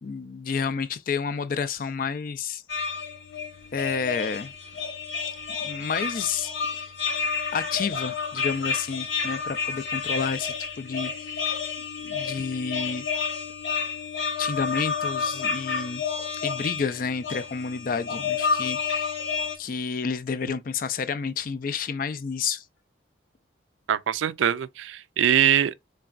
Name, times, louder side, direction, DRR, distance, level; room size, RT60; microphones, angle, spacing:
voice 1, 0.0-2.6 3.7-4.5 5.6-6.9 7.5-11.1 12.0-13.1 14.4-16.0 16.4-19.1 19.6-22.7, left 5 dB, 45° left, 0.4 m, -30 dB
sound 1, 2.7-19.5, left 5 dB, 80° left, 1.1 m, -30 dB
voice 2, 23.9-25.7, right 9 dB, 85° right, 0.3 m, -22 dB
4.0 x 3.4 x 2.4 m
head